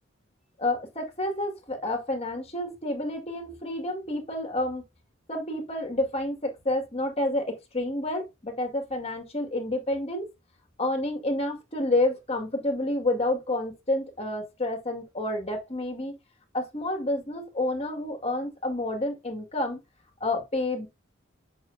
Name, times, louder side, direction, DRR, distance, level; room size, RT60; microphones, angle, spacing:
voice 1, 0.6-4.8 5.3-10.3 10.8-16.2 16.5-19.8 20.2-20.9, left 1 dB, 30° left, 2.1 m, -29 dB
8.0 x 6.1 x 2.7 m
head